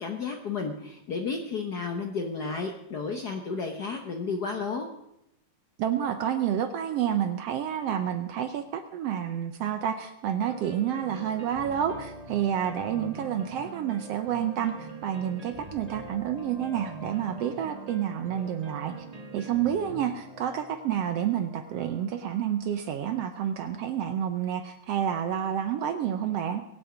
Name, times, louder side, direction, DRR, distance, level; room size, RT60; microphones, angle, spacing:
voice 1, 0.0-4.9, left 4 dB, 85° left, 4 dB, 0.8 m, -32 dB
voice 2, 5.8-18.9 19.3-26.6, right 9 dB, 70° right, 9 dB, 1.6 m, -29 dB
sound 1, 10.4-23.3, right 3 dB, 50° right, 0.4 m, -44 dB
23.0 x 8.5 x 5.0 m, 0.82 s
omnidirectional pair, 3.3 m